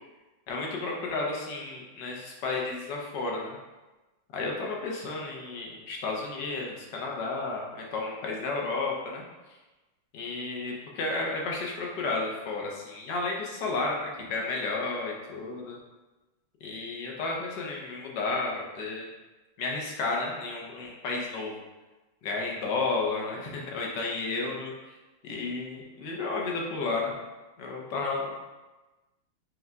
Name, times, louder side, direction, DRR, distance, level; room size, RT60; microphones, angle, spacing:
voice 1, 0.5-3.6 4.3-9.2 10.1-15.8 16.6-19.1 19.6-21.6 22.2-25.0 25.2-27.1 27.6-28.4, left 3 dB, 65° left, -1 dB, 1.2 m, -32 dB
5.4 x 2.2 x 3.5 m, 1.1 s
omnidirectional pair, 2.3 m